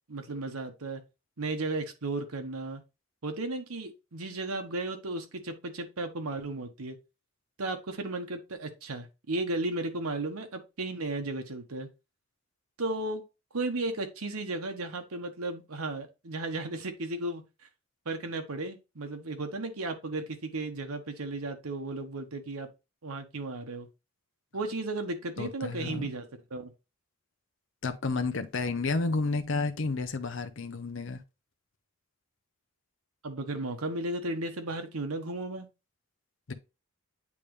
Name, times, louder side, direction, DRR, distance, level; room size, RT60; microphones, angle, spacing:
voice 1, 0.1-1.0 1.4-2.8 3.2-7.0 7.6-11.9 12.8-13.2 13.5-17.4 18.0-22.7 23.0-23.9 24.5-26.7 33.2-35.7, right 2 dB, 85° right, 1.1 m, -34 dB
voice 2, 25.4-26.1 27.8-31.2 36.5-36.6, left 3 dB, 60° left, 0.7 m, -31 dB
8.4 x 3.5 x 3.2 m
head